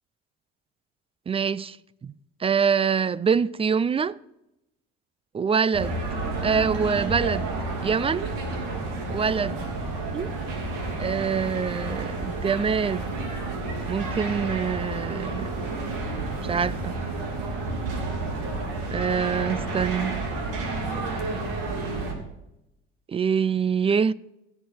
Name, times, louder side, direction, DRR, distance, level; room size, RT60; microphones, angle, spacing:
voice 1, 1.3-1.8 2.0-2.1 2.4-4.2 5.3-6.0 6.4-7.5 7.8-8.3 9.1-9.7 10.1-10.3 11.0-13.2 13.9-15.5 16.4-17.0 18.9-20.1 23.1-24.1, right 6 dB, 20° right, 0.3 m, -25 dB
sound 1, 5.7-22.1, right 3 dB, 65° right, 3.2 m, -30 dB
16.5 x 6.6 x 4.4 m
supercardioid pair, 85°, 33 cm